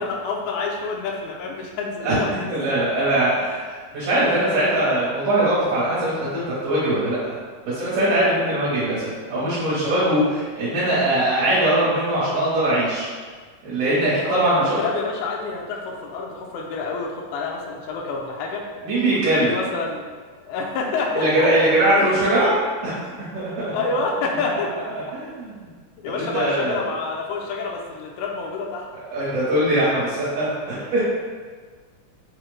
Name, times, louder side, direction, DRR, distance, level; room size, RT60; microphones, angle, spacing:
voice 1, 0.0-2.4 14.2-18.6 19.1-20.0 20.4-21.5 21.9-22.2 23.7-24.9 26.0-28.9 29.3-29.4, left 4 dB, 85° left, -1 dB, 1.7 m, -28 dB
voice 2, 2.5-7.4 7.7-9.0 9.3-13.1 13.6-14.8 18.8-19.5 21.1-22.5 22.8-23.7 25.1-25.7 26.1-26.8 29.1-31.0, right 1 dB, 70° right, -10 dB, 2.4 m, -21 dB
5.9 x 2.4 x 3.2 m, 1.5 s
omnidirectional pair, 4.0 m